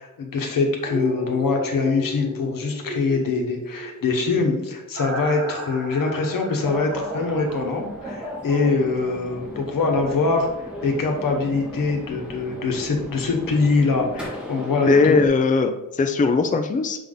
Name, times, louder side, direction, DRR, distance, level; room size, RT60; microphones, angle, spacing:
voice 1, 0.0-10.5 10.8-15.1, left 4 dB, 85° left, 2 dB, 1.2 m, -23 dB
sound 1, 0.8-8.7 9.1-9.2, left 1 dB, 45° right, 1.1 m, -34 dB
sound 2, 6.6-15.3, equal, 5° right, 1.6 m, -36 dB
voice 2, 14.9-17.1, left 4 dB, 25° left, 7 dB, 0.4 m, -19 dB
6.9 x 3.6 x 3.8 m, 0.93 s
wide cardioid pair, 130°, 33 cm